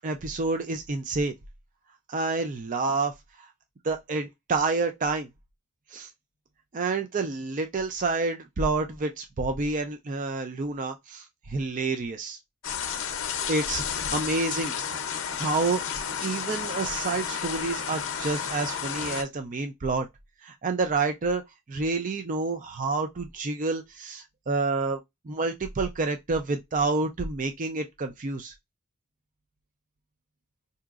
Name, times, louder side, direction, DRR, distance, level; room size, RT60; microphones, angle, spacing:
voice 1, 0.0-1.4 2.1-3.1 3.4-3.5 3.8-5.3 5.9-6.1 6.7-12.4 13.5-14.7 15.4-15.8 16.2-20.1 20.4-21.4 21.7-25.0 25.3-28.5, right 3 dB, 35° right, 0.4 m, -28 dB
sound 1, 12.6-19.2, left 7 dB, 65° left, 0.6 m, -32 dB
4.8 x 2.7 x 2.4 m
head